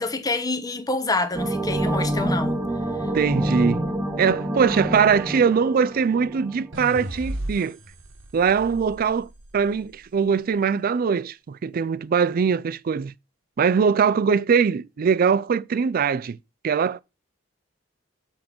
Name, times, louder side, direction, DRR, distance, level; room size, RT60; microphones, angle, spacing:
voice 1, 0.0-2.6 3.0-3.1, left 2 dB, 20° left, 0.9 m, -27 dB
sound 1, 1.3-6.7, right 1 dB, 10° right, 1.0 m, -27 dB
voice 2, 3.1-3.8 4.2-7.8 8.3-13.1 13.6-16.4 16.6-17.0, right 6 dB, 50° right, 0.4 m, -22 dB
sound 2, 6.7-10.0, right 1 dB, 90° right, 1.4 m, -36 dB
8.6 x 3.8 x 6.0 m
head